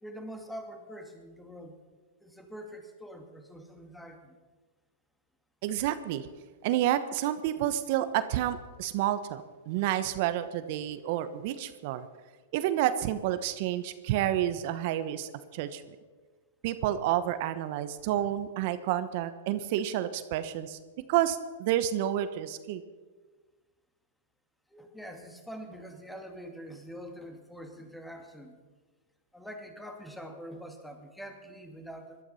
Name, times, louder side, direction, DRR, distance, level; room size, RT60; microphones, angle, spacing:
voice 1, 0.0-1.8 2.2-4.4 24.7-28.5 29.3-32.2, equal, 5° left, 5 dB, 2.3 m, -44 dB
voice 2, 5.6-6.3 6.6-12.1 12.5-15.8 16.6-20.8 21.1-22.8, right 12 dB, 55° right, 12 dB, 1.0 m, -29 dB
18.5 x 12.0 x 5.7 m, 1.4 s
hypercardioid pair, 120°, 0 cm